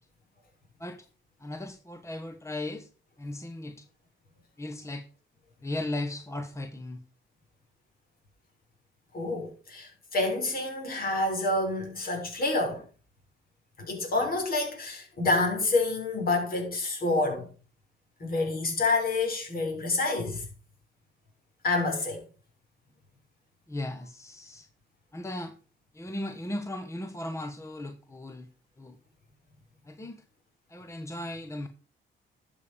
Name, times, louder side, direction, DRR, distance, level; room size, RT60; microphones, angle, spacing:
voice 1, 1.4-2.9 3.2-3.8 4.6-5.1 5.6-7.0 23.7-24.7 25.1-25.5 25.9-28.5 28.8-29.0 29.8-30.2 30.7-31.7, left 1 dB, 15° left, 1.2 m, -36 dB
voice 2, 9.1-12.8 13.8-17.5 18.2-20.5 21.6-22.2, left 2 dB, 50° left, 6.1 m, -28 dB
12.0 x 7.1 x 5.3 m
cardioid pair, 90°, 20 cm